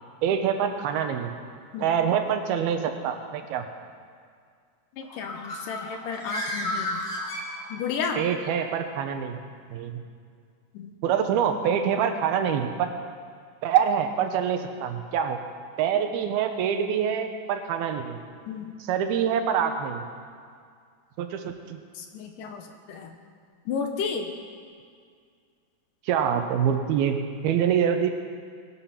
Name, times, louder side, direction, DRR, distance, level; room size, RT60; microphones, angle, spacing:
voice 1, 0.2-1.3 1.8-3.7 8.2-9.4 9.7-10.0 11.0-12.9 13.6-15.4 15.8-18.2 18.8-20.1 21.2-21.8 26.1-27.2 27.4-28.1, right 8 dB, 85° right, 6 dB, 2.9 m, -25 dB
voice 2, 5.0-7.0 7.7-8.2 10.8-10.9 18.5-18.7 22.0-22.6 22.9-23.1 23.7-24.3, left 6 dB, 70° left, 5 dB, 2.4 m, -32 dB
Bird, 5.0-8.1, left 1 dB, 40° left, 1.6 m, -33 dB
20.5 x 11.0 x 5.9 m, 2.2 s
omnidirectional pair, 4.3 m